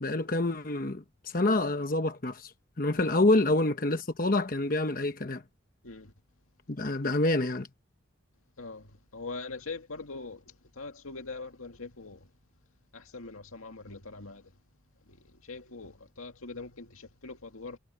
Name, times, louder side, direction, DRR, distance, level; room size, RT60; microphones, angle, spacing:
voice 1, 0.0-5.4 6.7-7.7, left 2 dB, 40° left, 1.1 m, -27 dB
voice 2, 9.1-10.4 10.8-12.2 12.9-14.4 15.5-17.8, left 3 dB, 90° left, 2.2 m, -42 dB
head